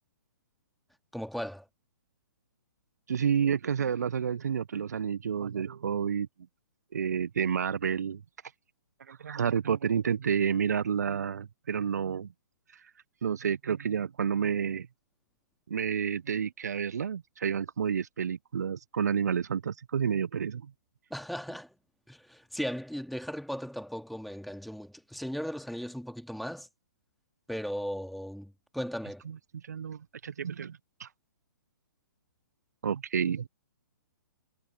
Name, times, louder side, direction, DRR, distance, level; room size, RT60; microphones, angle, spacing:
voice 1, 1.1-1.7 21.1-21.7 22.1-26.7 27.5-29.2, equal, ahead, 2.5 m, -37 dB
voice 2, 3.1-6.3 6.9-8.2 9.1-12.3 13.2-14.9 15.7-20.7 29.3-29.4 29.6-31.1 32.8-33.5, right 7 dB, 60° right, 1.4 m, -30 dB
figure-of-eight pair, 120°, 10 cm